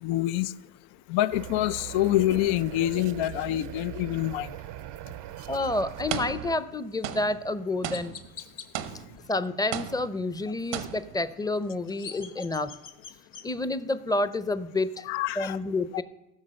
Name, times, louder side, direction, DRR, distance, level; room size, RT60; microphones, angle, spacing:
voice 1, 0.0-0.5 1.1-4.5 15.1-15.6 15.9-16.0, left 14 dB, 80° left, 16 dB, 0.6 m, -26 dB
sound 1, 1.3-6.6, right 15 dB, 65° right, 0.6 m, -40 dB
sound 2, 5.0-5.2 6.1-6.7 7.0-9.4 9.7-10.4 10.7-11.3, right 10 dB, 90° right, 1.0 m, -36 dB
voice 2, 5.5-8.2 9.3-12.7 13.4-15.1 15.4-16.0, left 2 dB, 10° left, 13 dB, 0.5 m, -29 dB
Chirp tweet, 7.0-7.2 7.9-8.7 11.6-13.5, left 7 dB, 60° left, 1.4 m, -44 dB
15.0 x 6.1 x 6.3 m, 0.97 s
supercardioid pair, 75°, 46 cm